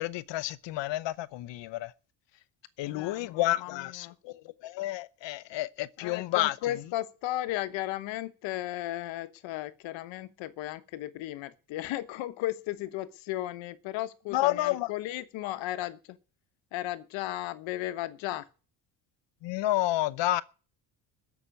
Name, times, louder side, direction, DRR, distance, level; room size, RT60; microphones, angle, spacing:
voice 1, 0.0-1.9 2.8-6.6 14.3-14.9 19.4-20.4, left 16 dB, 70° left, 0.8 m, -30 dB
voice 2, 2.8-4.1 6.0-16.2 16.7-18.5, left 15 dB, 90° left, 1.2 m, -35 dB
14.5 x 6.0 x 8.9 m
cardioid pair, 115°, 44 cm